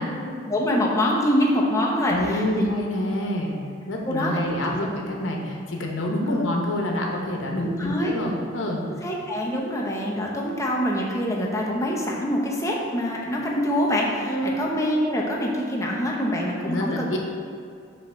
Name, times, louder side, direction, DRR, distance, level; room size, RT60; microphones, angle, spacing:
voice 1, 0.1-2.4 2.8-2.9 4.1-4.5 6.3-6.5 7.6-8.2 8.9-17.0, equal, 15° left, -3 dB, 0.8 m, -25 dB
voice 2, 2.1-3.6 3.9-8.8 14.2-14.6 16.7-17.2, left 1 dB, 80° left, 0 dB, 0.9 m, -27 dB
5.5 x 3.1 x 5.6 m, 2.4 s
head